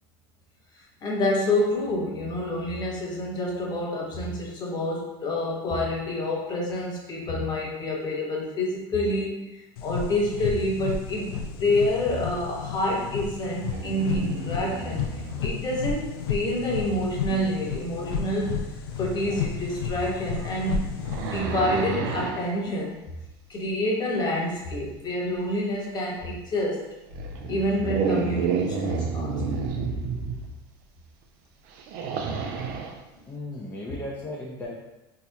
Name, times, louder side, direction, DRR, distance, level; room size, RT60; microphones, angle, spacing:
voice 1, 0.7-11.3 11.6-18.6 19.0-20.9 21.3-23.0 23.5-26.9 27.5-29.7, left 1 dB, 35° left, -2 dB, 1.1 m, -28 dB
sound 1, 9.8-21.4, left 6 dB, 80° left, 0.4 m, -32 dB
sound 2, 13.7-15.3 18.3-18.4 19.2-19.4 20.1-22.5 26.2-26.3 27.1-30.5 31.7-33.0, right 5 dB, 65° right, 0.5 m, -30 dB
voice 2, 33.3-34.8, left 1 dB, 20° left, -5 dB, 0.6 m, -36 dB
3.9 x 2.9 x 2.3 m, 1.0 s
hypercardioid pair, 95°, 12 cm